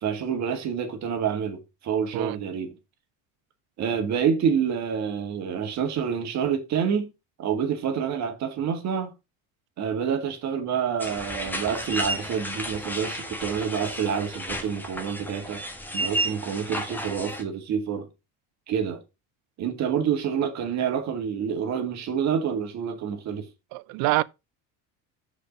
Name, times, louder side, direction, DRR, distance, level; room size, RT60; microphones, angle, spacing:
voice 1, 0.0-2.8 3.8-7.1 7.4-9.1 9.8-15.6 15.9-18.1 18.7-19.0 19.6-23.5, right 7 dB, 40° right, 2.1 m, -27 dB
sound 1, 11.0-17.4, right 1 dB, 5° left, 1.5 m, -32 dB
voice 2, 23.7-24.2, right 20 dB, 65° right, 0.6 m, -25 dB
6.6 x 5.1 x 6.1 m
cardioid pair, 145°, 40 cm